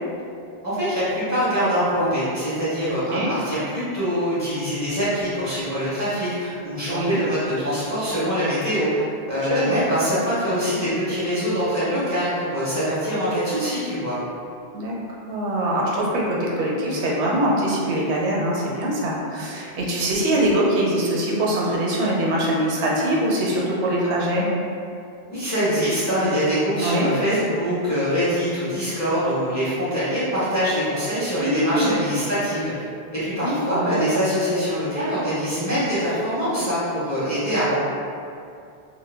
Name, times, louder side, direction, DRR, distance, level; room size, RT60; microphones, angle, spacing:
voice 1, 0.6-8.9 9.3-14.2 25.3-32.8 33.1-37.8, equal, 20° left, -12 dB, 0.6 m, -24 dB
voice 2, 2.9-3.3 6.9-7.2 9.5-9.9 14.7-24.5 26.8-27.0 31.4-32.0 33.4-33.9, right 1 dB, 80° right, -4 dB, 0.8 m, -23 dB
2.1 x 2.0 x 3.3 m, 2.5 s
omnidirectional pair, 1.1 m